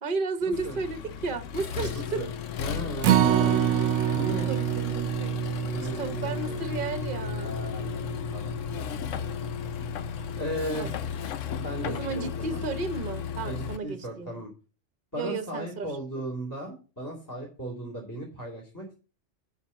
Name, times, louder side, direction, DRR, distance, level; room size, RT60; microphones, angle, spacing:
voice 1, 0.0-2.3 4.5-5.4 5.8-7.6 10.7-10.9 11.8-14.4 15.1-15.9, right 4 dB, 45° right, 1.0 m, -33 dB
Accelerating revving vroom, 0.5-13.8, left 8 dB, 90° left, 1.1 m, -34 dB
voice 2, 1.9-2.3 2.6-3.8 4.1-4.5 5.7-6.7 7.4-9.0 10.4-11.0 11.5-12.6 13.4-14.5 15.1-18.9, right 1 dB, 15° left, 2.7 m, -36 dB
Acoustic guitar, 3.0-9.3 9.7-9.8 10.2-10.3, right 11 dB, 80° right, 1.0 m, -27 dB
7.0 x 5.4 x 7.3 m
omnidirectional pair, 1.3 m